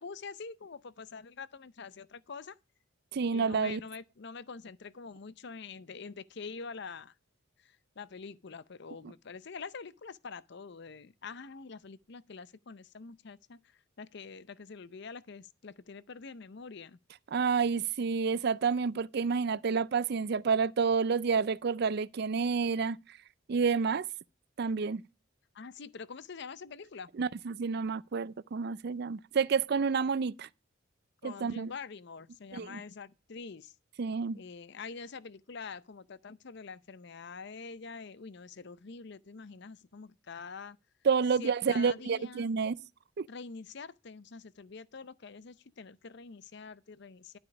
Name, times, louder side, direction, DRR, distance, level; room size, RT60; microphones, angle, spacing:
voice 1, 0.0-2.6 3.3-7.1 7.6-17.0 25.5-27.1 31.2-33.7 34.3-40.8 41.4-42.5 43.3-47.4, left 5 dB, 55° left, 0.6 m, -45 dB
voice 2, 3.1-3.8 17.3-23.0 23.5-24.1 24.6-25.0 27.2-30.5 31.2-31.7 32.5-32.8 34.0-34.4 41.0-42.8 43.2-43.3, right 5 dB, 50° right, 0.4 m, -29 dB
12.0 x 5.0 x 5.8 m
head